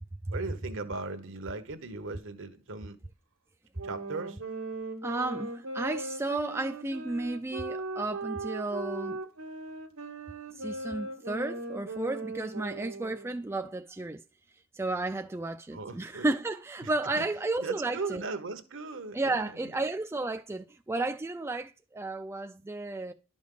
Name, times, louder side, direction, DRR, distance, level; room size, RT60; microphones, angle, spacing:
voice 1, 0.3-3.0 3.8-4.4 15.7-16.3 16.8-16.9 17.2-17.3 17.6-19.5, right 3 dB, 65° right, 1.1 m, -38 dB
sound 1, 3.7-13.4, right 2 dB, 90° right, 1.6 m, -38 dB
voice 2, 5.0-9.2 10.5-14.2 14.7-18.2 19.1-23.1, right 2 dB, 10° right, 0.4 m, -33 dB
11.5 x 5.2 x 3.9 m
head